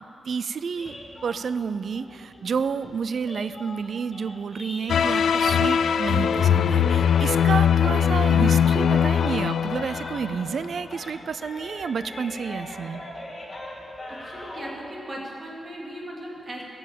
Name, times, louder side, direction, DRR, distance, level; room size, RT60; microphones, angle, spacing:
voice 1, 0.3-0.9 1.2-13.0, right 6 dB, 65° right, 14 dB, 0.4 m, -30 dB
sound 1, 0.7-5.8 6.1-10.6 10.9-14.8, left 1 dB, 25° left, 2.6 m, -41 dB
sound 2, 4.9-10.7, left 8 dB, 80° left, 0.3 m, -21 dB
voice 2, 14.1-16.6, right 1 dB, 40° right, -3 dB, 2.9 m, -37 dB
16.0 x 7.0 x 7.5 m, 2.6 s
cardioid pair, 85°, 0 cm